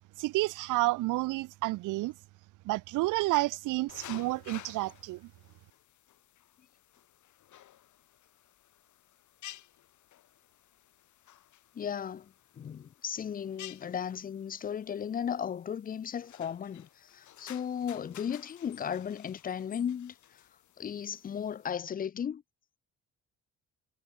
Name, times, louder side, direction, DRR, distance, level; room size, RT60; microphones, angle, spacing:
voice 1, 0.2-2.1 2.6-5.3, right 19 dB, 90° right, 0.6 m, -30 dB
sound 1, 3.9-21.7, left 12 dB, 75° left, 3.3 m, -53 dB
voice 2, 11.7-20.4 20.8-22.4, left 8 dB, 30° left, 0.4 m, -36 dB
cardioid pair, 90°, 30 cm